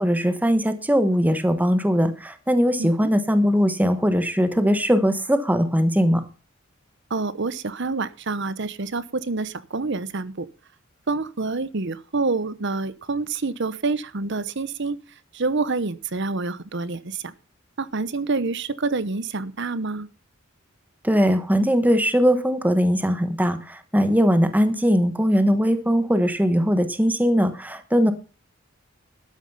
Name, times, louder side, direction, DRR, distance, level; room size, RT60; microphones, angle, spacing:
voice 1, 0.0-6.2 21.0-28.1, equal, 10° right, 9 dB, 1.2 m, -20 dB
voice 2, 2.8-3.1 7.1-10.5 11.1-15.0 15.3-17.3 17.8-20.1, right 3 dB, 60° right, 16 dB, 0.9 m, -27 dB
12.5 x 9.2 x 5.6 m, 0.35 s
head